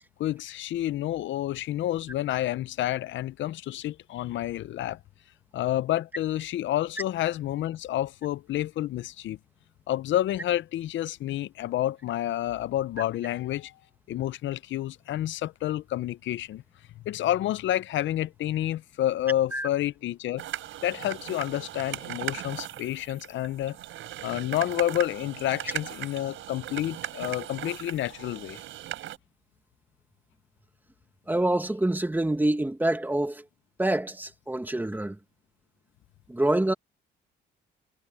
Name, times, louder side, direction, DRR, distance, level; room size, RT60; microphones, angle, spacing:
voice 1, 0.2-5.0 5.5-9.4 9.9-13.7 14.1-16.6 17.0-20.4 20.8-23.8 24.2-28.6, left 13 dB, 75° left, 0.6 m, -29 dB
sound 1, 20.4-29.2, right 13 dB, 80° right, 5.5 m, -38 dB
voice 2, 31.3-33.4 33.8-35.2 36.3-36.7, right 1 dB, 10° right, 1.6 m, -26 dB
cardioid pair, 90°, 20 cm